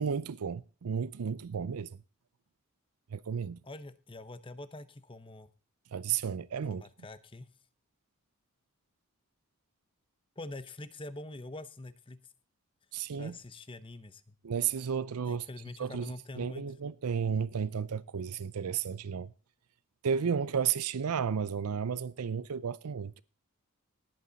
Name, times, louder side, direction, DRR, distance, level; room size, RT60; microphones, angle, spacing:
voice 1, 0.0-1.9 3.1-3.6 5.9-6.8 12.9-13.4 14.4-15.5 15.8-19.3 20.0-23.2, right 7 dB, 90° right, 0.5 m, -33 dB
voice 2, 3.6-5.5 6.6-7.5 10.4-12.2 13.2-14.4 15.3-16.7, left 2 dB, 25° left, 0.8 m, -45 dB
18.5 x 8.6 x 4.0 m
head